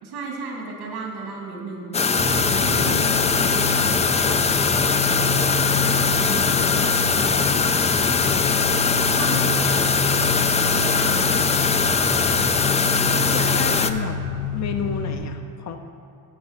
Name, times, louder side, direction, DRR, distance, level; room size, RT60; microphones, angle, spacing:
voice 1, 0.0-5.5 9.0-10.0 10.7-11.5, right 3 dB, 90° right, 0 dB, 2.3 m, -34 dB
sound 1, 1.9-13.9, left 5 dB, 20° left, 0.3 m, -21 dB
sound 2, 2.1-15.1, left 4 dB, 85° left, 2.4 m, -28 dB
voice 2, 2.6-3.2 6.3-7.7 13.3-14.2 14.5-15.8, left 6 dB, 45° left, 6 dB, 0.7 m, -32 dB
10.0 x 5.2 x 8.0 m, 2.3 s
cardioid pair, 105°, 37 cm